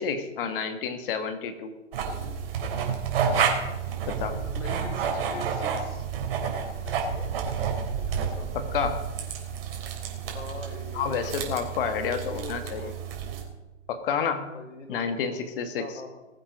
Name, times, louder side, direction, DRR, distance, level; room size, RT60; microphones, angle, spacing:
voice 1, 0.0-1.7 4.0-4.4 8.5-9.0 10.9-12.9 13.9-14.5 14.9-15.8, left 6 dB, 45° left, 8 dB, 1.6 m, -29 dB
sound 1, 1.9-13.4, right 6 dB, 50° right, 3.4 m, -30 dB
voice 2, 4.4-6.1 6.8-7.3 7.9-8.5 10.3-11.3 11.9-12.9 14.5-15.4 15.8-16.2, left 2 dB, 75° left, 5 dB, 3.5 m, -42 dB
20.0 x 8.0 x 5.2 m, 1.1 s
hypercardioid pair, 130°, 37 cm